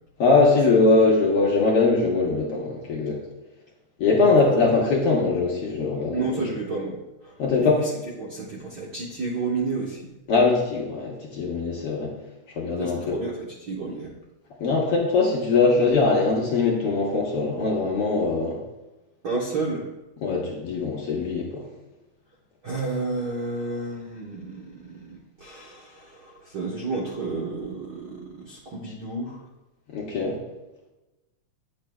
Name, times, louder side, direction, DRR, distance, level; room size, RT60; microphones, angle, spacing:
voice 1, 0.2-3.2 4.0-6.5 7.4-7.8 10.3-12.1 12.6-13.2 14.6-18.6 20.2-21.6 29.9-30.4, left 3 dB, 60° left, -3 dB, 1.9 m, -21 dB
voice 2, 6.1-7.0 7.2-7.3 7.6-7.9 8.2-10.1 12.8-14.1 19.2-19.9 22.6-29.4, right 3 dB, 60° right, -5 dB, 1.1 m, -31 dB
10.0 x 7.1 x 2.3 m, 1.0 s
omnidirectional pair, 3.3 m